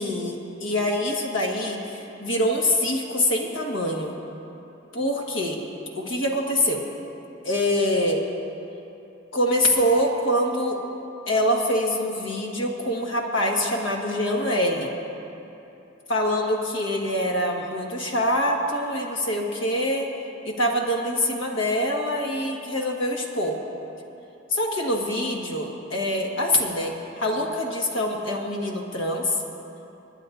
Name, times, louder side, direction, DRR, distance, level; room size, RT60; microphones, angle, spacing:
voice 1, 0.0-4.2 4.9-5.6 5.9-6.8 7.4-8.2 9.3-10.8 11.3-14.9 16.1-20.1 20.4-23.6 24.5-29.3, left 1 dB, 75° left, 0 dB, 1.5 m, -25 dB
26.5 x 11.0 x 2.6 m, 2.9 s
head